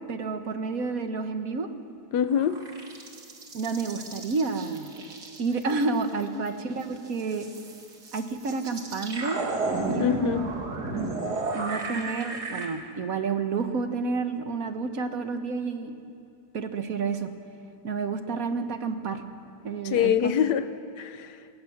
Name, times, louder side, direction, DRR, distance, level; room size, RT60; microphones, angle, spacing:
voice 1, 0.1-1.7 3.5-4.9 5.4-7.5 8.1-9.4 9.9-10.5 11.5-16.0 16.5-17.3 17.8-19.2 19.6-20.3, right 4 dB, 60° right, 1.6 m, -30 dB
voice 2, 2.1-2.6 10.0-10.5 19.8-20.7 21.0-21.3, left 8 dB, 85° left, 1.4 m, -24 dB
sound 1, 2.3-6.5 6.8-12.7, right 3 dB, 75° right, 2.7 m, -33 dB
20.5 x 18.5 x 7.2 m
omnidirectional pair, 1.7 m